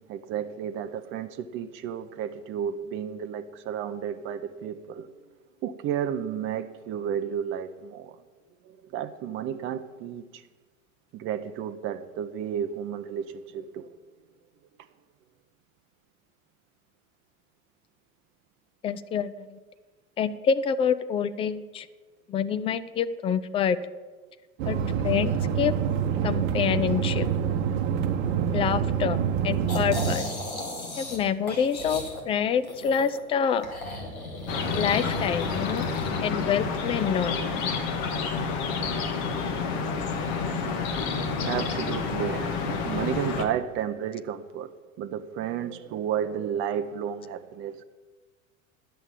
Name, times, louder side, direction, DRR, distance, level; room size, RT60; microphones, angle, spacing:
voice 1, 0.0-5.1 5.6-8.2 8.6-10.4 11.1-13.9 41.4-44.7 45.0-47.8, right 9 dB, 30° right, 8 dB, 0.6 m, -32 dB
voice 2, 18.8-19.6 20.2-21.9 22.3-23.8 24.7-24.8 25.0-25.7 26.2-27.3 28.5-29.2 29.4-30.3 31.0-33.7 34.7-35.8 36.2-37.3, left 7 dB, 15° left, 12 dB, 0.4 m, -26 dB
sound 1, 24.6-30.2, right 8 dB, 45° right, 1.0 m, -26 dB
sound 2, 29.7-31.2 31.5-33.2 33.6-36.1, left 2 dB, 75° left, 2.3 m, -35 dB
sound 3, 34.5-43.5, left 5 dB, 45° left, 1.6 m, -29 dB
11.0 x 7.6 x 8.6 m, 1.3 s
figure-of-eight pair, 80°, 42 cm